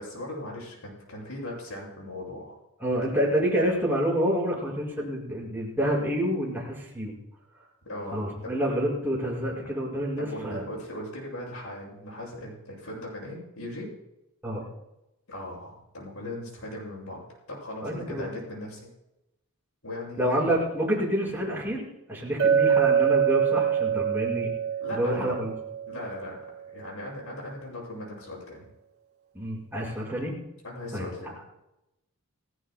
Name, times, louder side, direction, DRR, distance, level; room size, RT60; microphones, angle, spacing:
voice 1, 0.0-2.5 3.1-3.3 7.8-8.9 9.6-9.7 10.2-13.9 15.3-18.9 19.8-20.5 24.8-25.3 25.9-28.6 30.6-31.4, left 1 dB, 75° left, -4 dB, 7.4 m, -39 dB
voice 2, 2.8-7.1 8.1-10.6 14.4-14.6 17.8-18.3 20.2-21.8 22.1-24.5 25.0-25.5 29.3-30.3 30.9-31.1, equal, 10° right, -5 dB, 5.6 m, -28 dB
Chink clink, 22.4-26.4, right 8 dB, 50° right, 2.5 m, -24 dB
29.0 x 16.0 x 2.3 m, 0.92 s
head